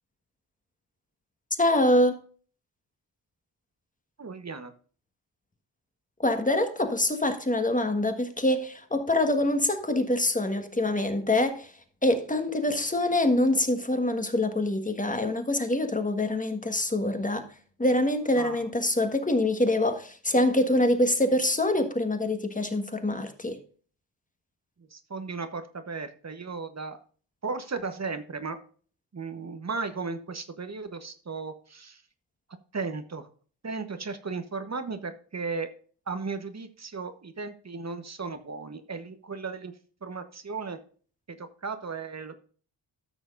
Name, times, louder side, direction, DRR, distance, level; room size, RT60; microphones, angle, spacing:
voice 1, 1.6-2.2 6.2-11.7 12.0-17.5 17.8-23.6, left 1 dB, 15° left, 1.5 m, -25 dB
voice 2, 4.2-4.7 18.4-18.6 24.9-27.0 27.4-28.6 29.1-32.0 32.7-33.3 33.6-35.7 36.1-39.7 40.0-40.8 41.4-42.3, right 4 dB, 35° right, 1.1 m, -35 dB
14.0 x 6.3 x 2.5 m
cardioid pair, 70°, 45 cm